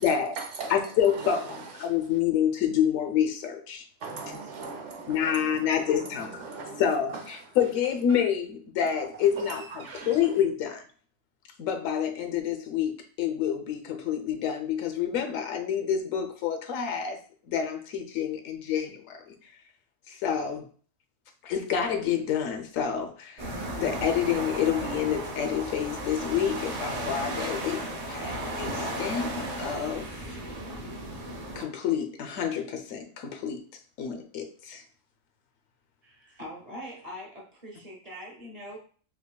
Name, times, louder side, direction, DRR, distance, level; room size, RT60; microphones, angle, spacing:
voice 1, 0.0-2.2 4.0-7.6 8.1-8.2 8.8-10.4, right 4 dB, 70° right, 0.9 m, -40 dB
voice 2, 0.7-1.4 1.8-3.9 5.1-6.3 6.8-10.8 11.6-17.2 17.4-19.3 20.1-20.7 21.4-30.4 31.6-33.6 34.0-34.8, left 8 dB, 85° left, 1.0 m, -28 dB
sound 1, 23.4-31.6, right 1 dB, 50° right, 0.5 m, -35 dB
voice 3, 36.0-38.8, equal, 35° right, 0.8 m, -42 dB
3.7 x 2.8 x 2.2 m
omnidirectional pair, 1.3 m